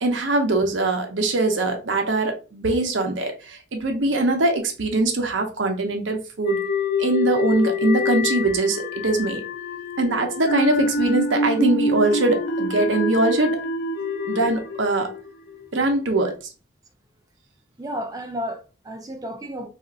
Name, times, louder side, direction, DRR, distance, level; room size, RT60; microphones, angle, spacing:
voice 1, 0.0-6.6 7.0-9.4 10.0-13.6 14.3-15.1 15.7-16.3, right 2 dB, 85° right, 0.7 m, -22 dB
sound 1, 6.4-15.7, left 2 dB, 50° left, 0.4 m, -26 dB
voice 2, 17.8-19.7, equal, 20° right, 0.4 m, -32 dB
4.2 x 2.4 x 2.4 m
head